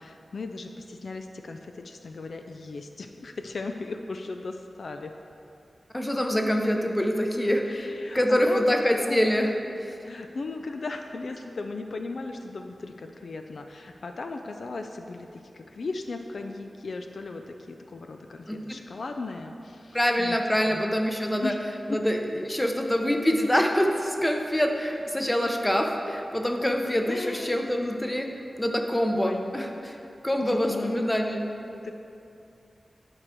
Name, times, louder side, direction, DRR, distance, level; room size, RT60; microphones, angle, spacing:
voice 1, 0.0-5.1 7.6-8.7 9.1-9.2 10.0-20.4 20.7-21.0 21.4-21.6 21.9-22.0 27.1-27.6 29.1-29.5 30.4-31.0 31.7-31.9, left 3 dB, 70° left, 5 dB, 0.4 m, -37 dB
voice 2, 5.9-7.9 8.1-9.5 9.8-10.0 18.5-18.6 19.9-21.5 21.9-28.3 28.6-29.9 30.2-31.4, equal, 10° left, 3 dB, 0.7 m, -25 dB
9.9 x 4.7 x 4.4 m, 2.6 s
wide cardioid pair, 75°, 0 cm